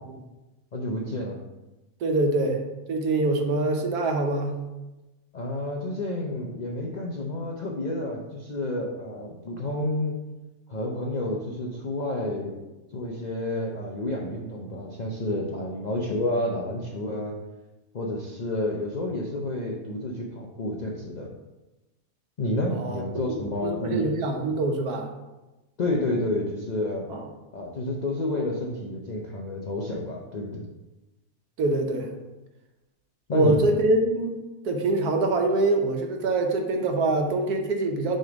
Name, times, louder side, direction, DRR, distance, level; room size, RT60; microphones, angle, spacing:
voice 1, 0.7-1.4 5.3-10.2 10.7-12.6 12.9-17.4 17.9-21.3 22.4-24.0 25.8-27.1 27.5-30.7 33.3-33.6, left 1 dB, 60° left, -2 dB, 0.4 m, -30 dB
voice 2, 2.0-2.6 2.9-4.6 22.7-23.4 23.6-25.1 27.1-27.2 31.6-32.1 33.3-38.2, right 2 dB, 80° right, 3 dB, 1.3 m, -24 dB
6.4 x 3.3 x 5.1 m, 1.1 s
omnidirectional pair, 1.6 m